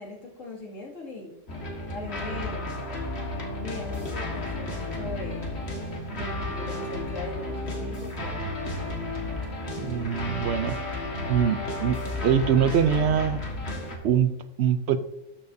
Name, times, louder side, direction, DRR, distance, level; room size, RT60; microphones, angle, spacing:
voice 1, 0.0-1.3 1.9-2.7 3.6-5.5 6.1-8.5, left 2 dB, 85° left, 2.8 m, -39 dB
sound 1, 1.5-14.0, left 2 dB, 55° left, 1.9 m, -33 dB
voice 2, 9.8-10.8 11.3-12.0 12.2-13.5 14.0-15.0, right 8 dB, 65° right, 0.8 m, -23 dB
13.0 x 7.3 x 2.7 m
omnidirectional pair, 1.3 m